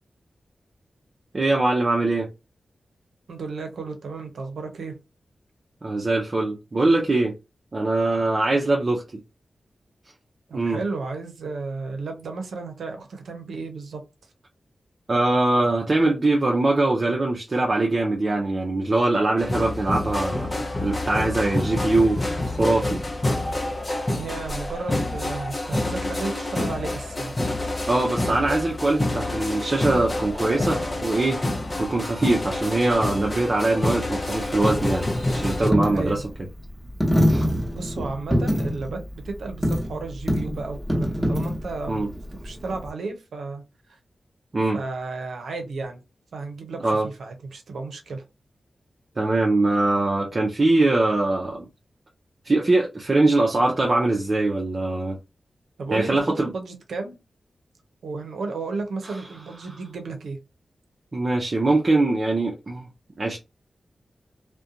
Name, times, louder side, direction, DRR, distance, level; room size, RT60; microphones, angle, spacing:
voice 1, 1.3-2.3 5.8-7.3 7.7-9.0 10.5-10.8 15.1-23.0 27.9-31.4 31.8-35.1 35.3-36.2 37.3-37.5 41.9-42.1 44.5-44.8 46.8-47.1 49.2-51.6 52.4-55.2 55.9-56.5 61.1-62.8 63.2-63.4, right 2 dB, 45° right, 0.5 m, -22 dB
voice 2, 3.3-4.9 10.5-14.0 24.1-27.3 35.9-36.2 37.7-39.0 39.2-43.6 44.7-46.0 46.3-48.2 55.8-57.2 58.0-60.4, right 3 dB, 90° right, 0.6 m, -33 dB
sound 1, 19.4-35.7, left 2 dB, 35° left, 0.6 m, -27 dB
Coin (dropping), 34.4-42.9, equal, 10° right, 0.9 m, -26 dB
2.5 x 2.2 x 2.7 m
cardioid pair, 60°, 0 cm